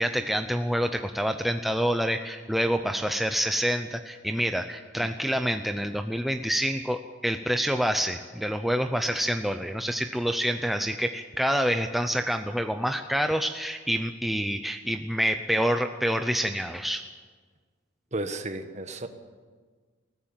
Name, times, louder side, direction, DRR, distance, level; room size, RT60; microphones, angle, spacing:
voice 1, 0.0-17.0, equal, ahead, 6 dB, 0.6 m, -27 dB
voice 2, 18.1-19.1, right 2 dB, 35° right, 8 dB, 1.4 m, -33 dB
20.5 x 15.0 x 8.9 m, 1.5 s
head